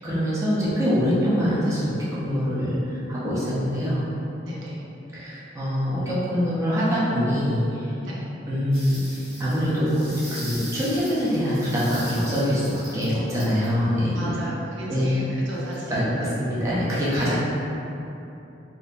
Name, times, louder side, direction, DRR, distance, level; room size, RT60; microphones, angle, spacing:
voice 1, 0.0-4.0 5.1-7.9 8.5-14.3 14.9-15.3 15.9-17.4, equal, 15° right, -10 dB, 0.8 m, -24 dB
voice 2, 4.4-4.8 8.0-8.3 14.1-16.4 17.2-17.4, right 1 dB, 75° right, -6 dB, 0.6 m, -35 dB
sound 1, 8.7-13.7 15.4-16.0, right 1 dB, 35° right, 1.5 m, -40 dB
4.1 x 2.7 x 2.5 m, 2.9 s
head